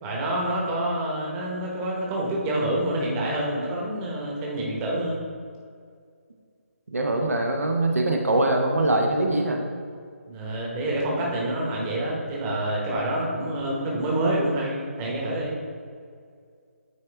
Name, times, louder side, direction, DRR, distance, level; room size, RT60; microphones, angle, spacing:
voice 1, 0.0-5.2 10.3-15.6, right 1 dB, 20° right, -3 dB, 1.0 m, -27 dB
voice 2, 6.9-9.6, right 1 dB, 80° right, 2 dB, 0.9 m, -23 dB
9.4 x 3.3 x 3.4 m, 2.2 s
figure-of-eight pair, 150°, 8 cm